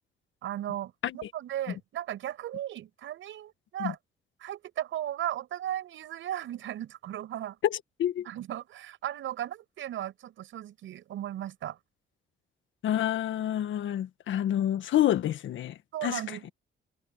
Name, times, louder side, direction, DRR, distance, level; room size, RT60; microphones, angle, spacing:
voice 1, 0.4-4.0 4.4-7.6 8.2-11.8 15.9-16.5, right 12 dB, 80° right, 6.7 m, -36 dB
voice 2, 7.7-8.3 12.8-16.2, left 11 dB, 75° left, 1.6 m, -28 dB
cardioid pair, 90°, 20 cm